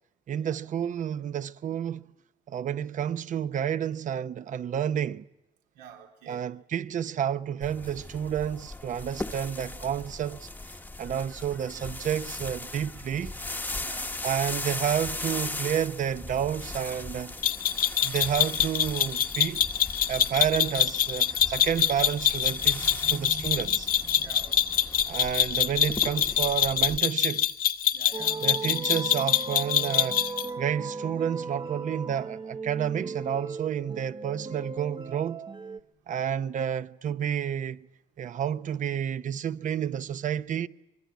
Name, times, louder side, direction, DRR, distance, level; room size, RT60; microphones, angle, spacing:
voice 1, 0.3-2.0 2.5-5.2 6.3-13.3 14.2-17.3 18.0-19.6 20.1-23.9 25.1-27.5 28.4-30.2 30.6-35.4 36.1-37.9 38.2-40.7, right 9 dB, 50° right, 0.9 m, -30 dB
voice 2, 5.8-6.5 13.8-14.2 22.8-23.7 24.0-24.9 27.9-28.4, right 6 dB, 90° right, 3.7 m, -46 dB
sound 1, 7.6-27.0, left 2 dB, 10° left, 1.1 m, -38 dB
sound 2, 17.4-30.5, left 9 dB, 55° left, 1.2 m, -25 dB
sound 3, 28.1-35.8, right 4 dB, 30° right, 1.1 m, -37 dB
24.5 x 22.5 x 9.6 m
cardioid pair, 110°, 17 cm